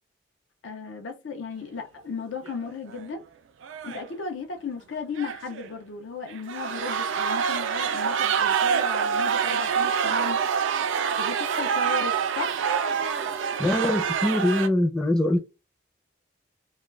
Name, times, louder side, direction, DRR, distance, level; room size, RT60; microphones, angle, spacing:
voice 1, 0.6-3.2 3.8-10.4 11.2-12.6, left 4 dB, 75° left, 0.5 m, -35 dB
sound 1, 2.4-2.7 2.9-3.0 3.6-4.1 5.2-5.7 6.3-14.7, right 7 dB, 80° right, 0.3 m, -26 dB
voice 2, 13.6-15.4, left 1 dB, 5° left, 0.4 m, -23 dB
2.2 x 2.2 x 3.1 m
head